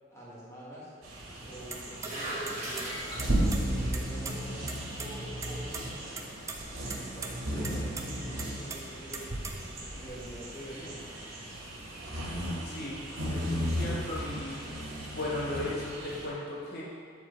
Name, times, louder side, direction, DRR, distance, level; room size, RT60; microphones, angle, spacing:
voice 1, 0.1-0.9 1.4-3.1 3.4-4.6 5.0-6.1 6.7-9.6 9.9-11.1, equal, 15° left, -8 dB, 1.6 m, -46 dB
sound 1, 1.0-16.3, right 1 dB, 85° right, 1.7 m, -35 dB
sound 2, 1.6-7.2, right 1 dB, 35° right, 1.6 m, -42 dB
sound 3, 1.7-2.1 2.5-2.9 3.2-4.3 4.7-4.8 5.0-5.1 5.4-5.8 6.2-6.6 6.9-7.3 7.6-8.0 8.4-9.8, right 4 dB, 15° right, 0.4 m, -39 dB
voice 2, 12.6-14.6 14.9-16.8, left 1 dB, 50° left, -6 dB, 1.5 m, -37 dB
8.9 x 4.3 x 3.9 m, 2.2 s
head